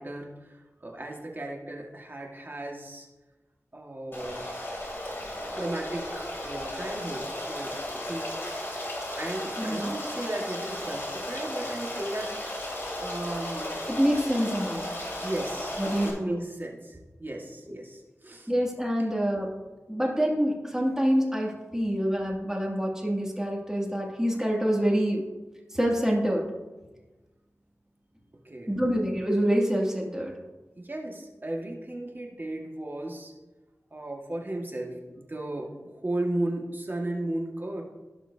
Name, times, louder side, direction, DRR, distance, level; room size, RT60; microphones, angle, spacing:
voice 1, 0.0-3.1 3.7-4.5 5.6-8.3 9.2-12.5 13.0-13.8 14.7-14.9 15.2-18.5 19.0-19.1 28.4-28.8 30.8-33.3 33.9-37.8, right 1 dB, 40° right, 0 dB, 1.9 m, -35 dB
Stream, 4.1-16.1, left 1 dB, 45° left, 3.4 m, -35 dB
voice 2, 9.6-9.9 13.9-14.9 15.8-16.4 18.5-19.5 19.9-25.2 25.7-26.5 28.7-30.3, equal, 10° right, -2 dB, 2.5 m, -26 dB
17.0 x 5.9 x 2.8 m, 1.2 s
wide cardioid pair, 50°, 6 cm